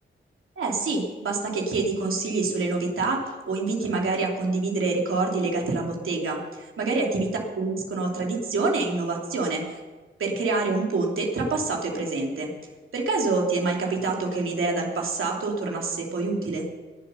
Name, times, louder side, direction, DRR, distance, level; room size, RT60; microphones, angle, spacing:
voice 1, 0.6-7.3 7.6-9.8 10.2-12.5 12.9-16.6, right 3 dB, 90° right, -1 dB, 3.0 m, -26 dB
20.0 x 7.7 x 5.6 m, 1.3 s
wide cardioid pair, 160°, 20 cm